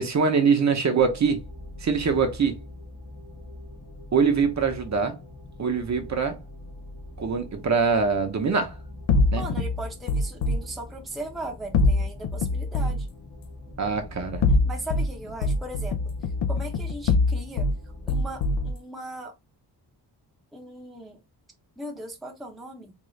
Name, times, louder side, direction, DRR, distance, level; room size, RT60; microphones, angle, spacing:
voice 1, 0.0-1.4 1.8-2.6 4.1-5.2 5.6-6.4 7.2-8.8 9.3-9.4 13.8-14.4, right 5 dB, 45° right, 0.7 m, -23 dB
sound 1, 1.0-18.7, left 1 dB, 55° left, 1.7 m, -43 dB
sound 2, 9.1-10.6 11.7-13.1 14.2-15.1 15.4-17.8 18.1-18.7, left 3 dB, 80° left, 0.5 m, -23 dB
voice 2, 9.4-13.1 14.6-16.1 16.5-17.7 18.1-19.3 20.5-21.2 21.8-22.9, right 1 dB, ahead, 0.6 m, -38 dB
3.7 x 2.4 x 3.1 m
wide cardioid pair, 160°, 41 cm